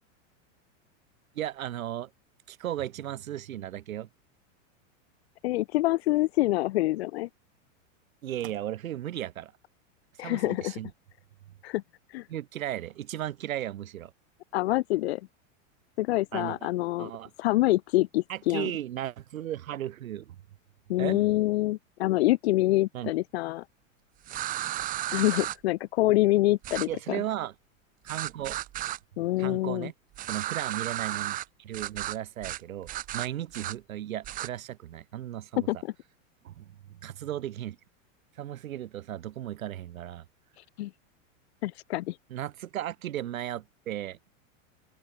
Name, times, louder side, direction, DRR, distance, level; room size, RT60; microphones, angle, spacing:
voice 1, 1.3-2.1 2.5-4.1 8.2-9.5 10.2-10.9 12.3-14.1 16.3-16.7 17.0-17.3 18.3-20.3 21.0-21.2 22.9-23.1 26.9-27.5 28.0-28.6 29.4-29.9 30.3-35.7 36.4-37.8 38.4-40.2 42.3-44.2, right 12 dB, 90° right, 5.3 m, -35 dB
voice 2, 5.4-7.3 10.2-10.8 11.6-11.8 12.1-12.3 14.5-15.2 16.0-17.1 17.4-18.7 20.9-23.6 25.1-27.2 29.2-29.9 35.7-35.9 40.6-40.9 41.6-42.2, left 17 dB, 50° left, 1.4 m, -26 dB
sound 1, 24.3-25.6 26.6-26.9 28.1-29.0 30.1-31.4 31.7-32.2 32.4-32.6 32.9-33.7 34.2-34.5, right 14 dB, 20° right, 2.1 m, -34 dB
supercardioid pair, 175°, 40 cm